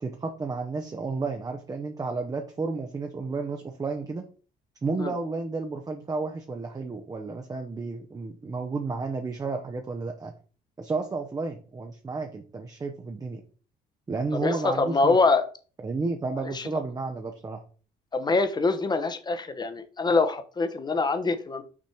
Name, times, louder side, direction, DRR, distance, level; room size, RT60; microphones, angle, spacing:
voice 1, 0.0-4.3 4.8-10.3 10.8-13.4 14.1-15.2 15.8-17.6, right 3 dB, 20° right, 4 dB, 0.8 m, -32 dB
voice 2, 14.4-15.4 16.4-16.7 18.1-21.6, left 3 dB, 25° left, 9 dB, 0.9 m, -24 dB
6.2 x 4.2 x 4.5 m, 0.39 s
cardioid pair, 110°, 17 cm